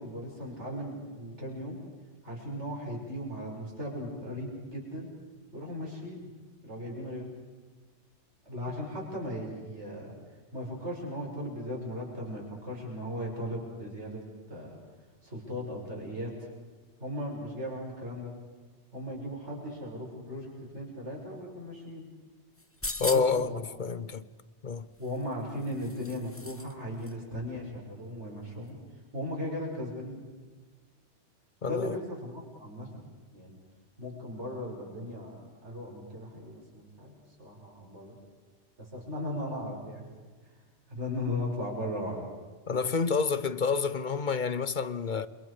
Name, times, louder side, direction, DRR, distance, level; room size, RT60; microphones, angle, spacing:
voice 1, 0.0-1.8 2.2-5.1 5.5-6.3 6.6-7.3 8.4-10.2 10.5-14.2 14.5-14.8 15.2-16.5 17.0-18.3 18.9-22.1 23.1-23.6 25.0-28.8 29.1-30.2 31.6-33.0 33.3-33.6 34.0-38.1 38.8-40.1 40.9-42.2, left 1 dB, 70° right, 6.6 m, -37 dB
sound 1, 22.6-23.5 25.0-26.7 27.0-27.1, left 2 dB, 10° left, 1.0 m, -39 dB
voice 2, 23.0-23.5 23.8-24.2 24.6-24.9 31.6-32.0 42.7-45.3, left 5 dB, 45° left, 0.9 m, -28 dB
29.0 x 26.0 x 5.0 m
omnidirectional pair, 1.2 m